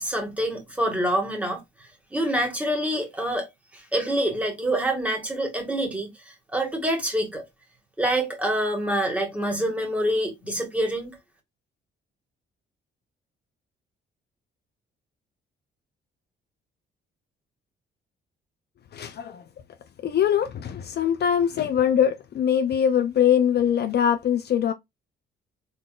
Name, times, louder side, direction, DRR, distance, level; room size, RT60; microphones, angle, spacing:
voice 1, 0.0-1.6 2.1-3.5 3.7-6.1 6.5-7.4 8.0-11.2, right 1 dB, 5° right, 1.9 m, -26 dB
voice 2, 18.9-19.4 20.0-24.7, left 9 dB, 55° left, 0.5 m, -22 dB
3.8 x 3.8 x 2.4 m
cardioid pair, 90°, 20 cm